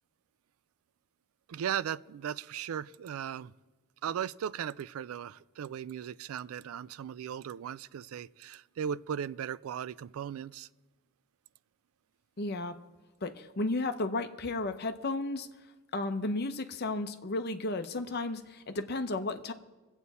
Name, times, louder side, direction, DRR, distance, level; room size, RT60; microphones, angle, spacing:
voice 1, 1.5-3.5 4.0-10.7, right 9 dB, 80° right, 0.3 m, -37 dB
voice 2, 12.4-12.8 13.2-15.5 15.9-19.5, left 2 dB, 50° left, 0.7 m, -33 dB
23.0 x 8.1 x 4.2 m
head